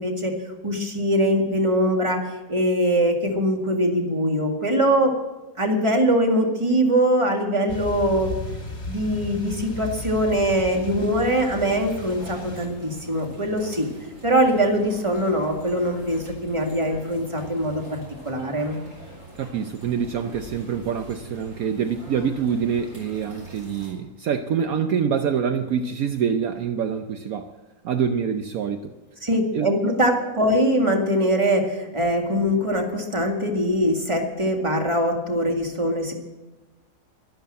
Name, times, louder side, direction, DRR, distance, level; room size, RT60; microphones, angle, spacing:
voice 1, 0.0-5.1 5.6-8.3 8.9-13.9 14.2-18.8 29.2-36.1, equal, 20° right, 2 dB, 2.0 m, -22 dB
sound 1, 7.7-12.7, left 3 dB, 45° left, 1.9 m, -35 dB
sound 2, 11.6-23.9, right 2 dB, 50° right, 4.7 m, -43 dB
voice 2, 19.4-27.5 27.8-28.9 29.5-29.9, right 7 dB, 70° right, 7 dB, 1.2 m, -26 dB
12.5 x 12.0 x 7.6 m, 1.1 s
omnidirectional pair, 1.7 m